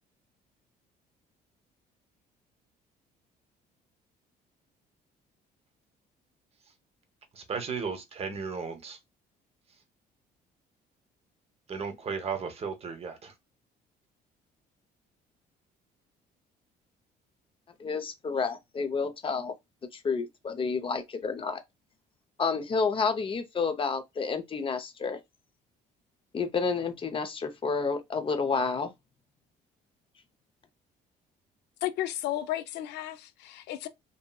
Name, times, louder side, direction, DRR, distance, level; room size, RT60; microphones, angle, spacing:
voice 1, 7.3-9.0 11.7-13.3, right 5 dB, 35° right, 0.8 m, -35 dB
voice 2, 17.8-19.5 19.9-21.6 22.4-25.2 26.3-28.9, left 5 dB, 30° left, 0.6 m, -30 dB
voice 3, 31.8-33.9, left 13 dB, 80° left, 0.4 m, -33 dB
2.7 x 2.7 x 2.2 m
cardioid pair, 110°, 17 cm